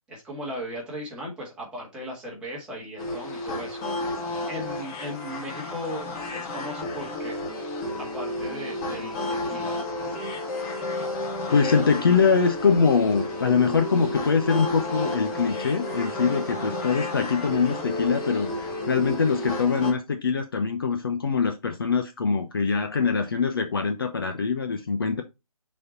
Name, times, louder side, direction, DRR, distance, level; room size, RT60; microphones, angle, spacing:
voice 1, 0.1-3.8 4.5-7.4 8.0-9.8, equal, 5° right, 1.9 m, -37 dB
sound 1, 3.0-19.9, left 1 dB, 10° left, 0.8 m, -32 dB
voice 2, 11.5-25.2, left 5 dB, 40° left, 0.8 m, -23 dB
6.4 x 4.4 x 4.3 m
figure-of-eight pair, 150°, 18 cm